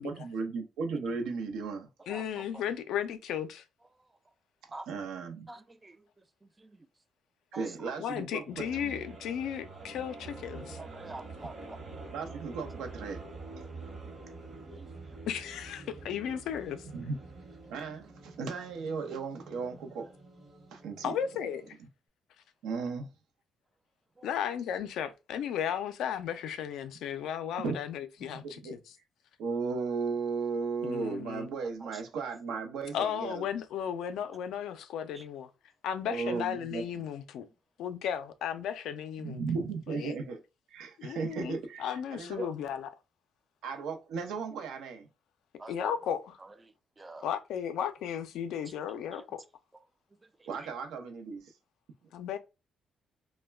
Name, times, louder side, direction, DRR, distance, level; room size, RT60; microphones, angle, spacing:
voice 1, 0.0-1.9 4.9-5.5 7.5-9.0 12.1-13.2 16.9-17.2 17.7-20.1 20.7-21.1 22.6-23.1 27.6-27.8 28.3-28.7 29.4-33.4 36.1-37.1 39.2-40.4 40.7-42.5 43.6-45.1 50.5-51.5, right 4 dB, 85° right, 0.6 m, -36 dB
voice 2, 2.1-3.6 8.0-10.8 15.3-16.9 21.0-21.8 24.2-28.8 30.8-31.5 32.9-35.5 35.8-37.5 37.8-39.5 39.9-40.1 41.0-42.9 45.7-46.4 47.2-49.4 52.1-52.4, left 9 dB, 80° left, 0.4 m, -35 dB
voice 3, 5.5-6.0 6.6-6.8 7.5-7.7 10.8-11.8 14.6-14.9 24.2-24.3 31.8-31.9 35.1-35.2 45.6-45.9 47.0-47.2 48.9-49.0, right 2 dB, 20° right, 0.3 m, -46 dB
sound 1, 8.5-21.7, right 3 dB, 45° right, 1.0 m, -47 dB
2.2 x 2.1 x 3.2 m
cardioid pair, 90°, 0 cm